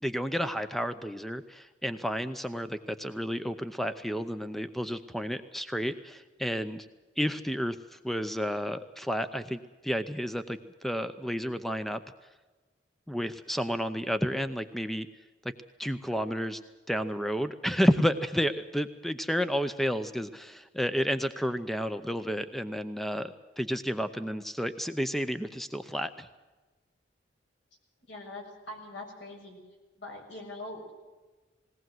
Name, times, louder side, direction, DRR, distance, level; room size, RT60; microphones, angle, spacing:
voice 1, 0.0-6.9 7.2-12.0 13.1-15.1 15.8-16.6 16.9-26.3, equal, ahead, 10 dB, 0.7 m, -31 dB
voice 2, 28.1-29.6 30.0-30.9, left 2 dB, 70° left, 1 dB, 7.2 m, -42 dB
20.5 x 18.0 x 7.8 m, 1.2 s
head